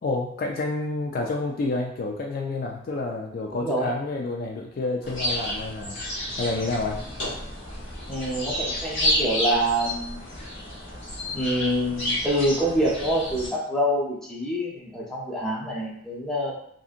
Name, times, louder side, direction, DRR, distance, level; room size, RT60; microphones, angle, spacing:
voice 1, 0.0-7.0, left 2 dB, 50° left, 0 dB, 0.3 m, -29 dB
voice 2, 3.5-3.9 8.1-10.2 11.3-16.6, equal, 5° left, -6 dB, 0.6 m, -26 dB
sound 1, 5.0-13.5, left 1 dB, 70° left, 1.1 m, -30 dB
2.7 x 2.6 x 2.4 m, 0.71 s
head